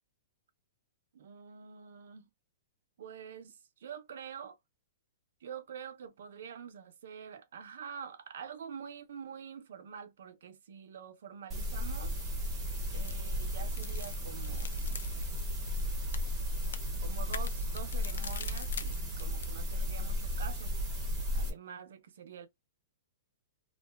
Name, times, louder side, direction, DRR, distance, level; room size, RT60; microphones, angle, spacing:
voice 1, 1.1-2.3 3.0-4.6 5.4-12.2 12.9-15.0 17.0-20.7 21.3-22.5, right 7 dB, 60° right, 0.6 m, -46 dB
sound 1, 11.5-21.5, equal, 10° right, 0.8 m, -34 dB
sound 2, 12.6-19.6, left 7 dB, 85° left, 0.4 m, -46 dB
2.6 x 2.2 x 3.2 m
hypercardioid pair, 175°, 0 cm